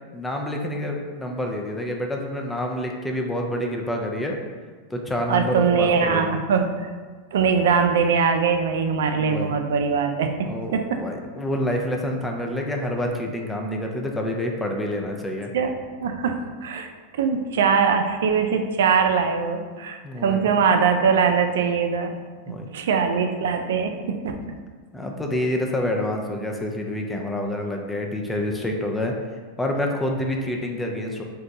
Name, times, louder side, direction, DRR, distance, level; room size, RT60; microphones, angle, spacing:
voice 1, 0.1-4.4 4.9-6.4 9.2-9.6 10.5-15.5 20.0-20.5 22.5-22.7 24.9-29.1 29.6-31.2, left 1 dB, 10° left, 1 dB, 0.4 m, -27 dB
voice 2, 5.3-6.9 7.3-10.3 10.7-11.0 15.5-15.7 16.0-16.9 17.1-22.1 22.7-23.9 24.2-24.3, right 6 dB, 80° right, 6 dB, 0.3 m, -21 dB
2.6 x 2.2 x 3.9 m, 1.5 s
hypercardioid pair, 115°, 0 cm